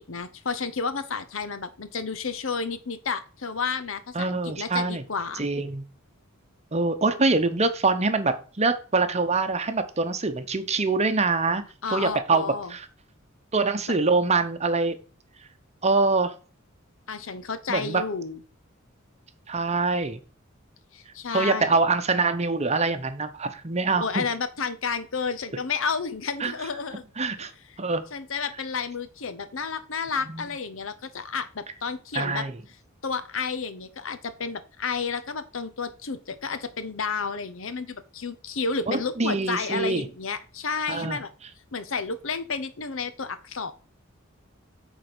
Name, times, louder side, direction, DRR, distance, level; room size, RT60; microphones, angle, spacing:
voice 1, 0.0-5.5 11.8-12.7 17.1-18.4 20.9-21.8 24.0-27.0 28.1-32.5 33.0-41.3 41.7-43.7, left 5 dB, 70° left, 11 dB, 0.9 m, -31 dB
voice 2, 4.1-5.0 5.4-5.8 6.7-11.6 11.9-12.4 12.7-12.9 13.5-15.0 15.8-16.3 17.7-18.0 19.5-20.2 21.3-24.3 26.4-26.5 27.2-27.5 27.8-28.0 30.3-30.5 32.1-32.5 38.9-40.1 40.9-41.2, right 3 dB, 30° right, 9 dB, 0.9 m, -24 dB
8.6 x 4.2 x 6.1 m, 0.38 s
head